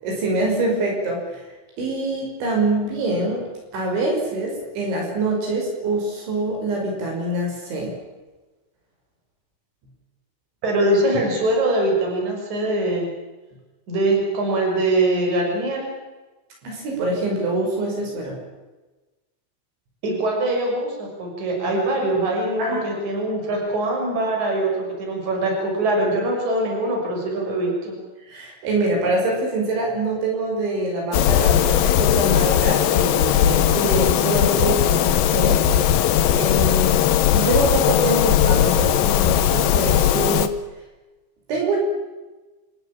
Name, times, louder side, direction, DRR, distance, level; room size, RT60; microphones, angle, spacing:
voice 1, 0.0-1.4 1.8-3.4 3.7-7.9 16.6-18.4 22.6-22.8 28.3-35.7 36.3-40.5 41.5-41.8, right 2 dB, 70° right, -1 dB, 8.1 m, -24 dB
voice 2, 10.6-13.1 13.9-15.9 20.0-27.9, right 1 dB, 40° right, 0 dB, 7.3 m, -22 dB
sound 1, 31.1-40.5, left 10 dB, 75° left, 2.2 m, -18 dB
28.0 x 16.0 x 8.8 m, 1.2 s
omnidirectional pair, 5.5 m